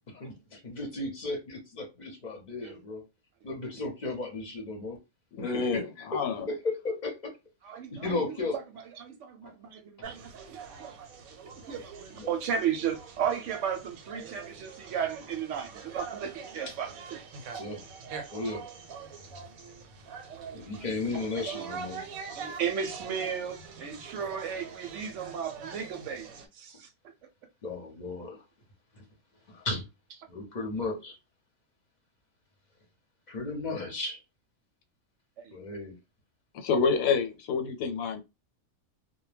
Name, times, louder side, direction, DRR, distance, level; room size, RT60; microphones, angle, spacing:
voice 1, 0.1-3.0 3.4-5.0 5.4-5.8 6.1-7.3 7.9-8.6 12.2-12.3 17.6-17.8 18.3-18.6 20.5-22.0 25.7-25.8 27.6-28.4 29.0-29.1 29.5-29.8 30.3-31.2 33.3-34.2 35.5-36.0, left 3 dB, 40° left, 0.7 m, -35 dB
voice 2, 5.3-6.4 36.5-38.2, left 5 dB, 90° left, 1.1 m, -28 dB
voice 3, 7.6-8.6 9.0-11.1 11.7-17.2 20.3-22.1 22.3-26.3 26.5-26.9 35.4-35.6, right 7 dB, 70° right, 0.8 m, -35 dB
sound 1, 10.0-26.5, right 6 dB, 90° right, 1.0 m, -44 dB
2.2 x 2.2 x 3.2 m
omnidirectional pair, 1.4 m